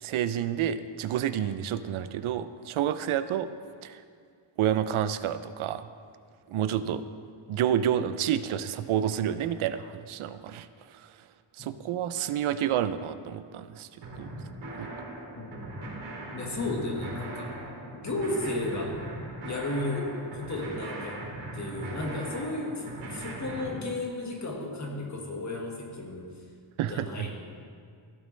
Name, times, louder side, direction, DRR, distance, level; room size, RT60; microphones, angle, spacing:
voice 1, 0.0-3.5 3.8-4.0 4.6-5.9 6.5-7.0 7.5-11.0 11.6-13.9 14.2-14.3 14.8-14.9 26.8-27.3, right 10 dB, 85° right, 12 dB, 0.6 m, -29 dB
sound 1, 14.0-23.7, right 2 dB, 60° right, 2.9 m, -40 dB
voice 2, 15.3-15.7 16.3-17.5 17.9-19.0 19.4-21.2 21.5-26.3 26.9-27.4, left 2 dB, 35° left, 0 dB, 1.6 m, -33 dB
15.0 x 9.1 x 3.3 m, 2.2 s
wide cardioid pair, 150°, 48 cm